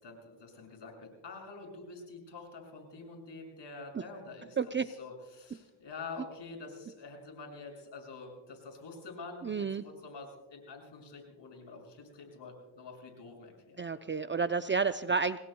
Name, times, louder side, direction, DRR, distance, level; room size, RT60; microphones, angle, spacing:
voice 1, 0.0-13.8, left 3 dB, 55° left, 1 dB, 7.0 m, -47 dB
voice 2, 4.6-4.9 9.4-9.9 13.8-15.4, right 5 dB, 25° right, 10 dB, 0.6 m, -30 dB
28.5 x 19.5 x 2.3 m, 1.1 s
cardioid pair, 80°, 50 cm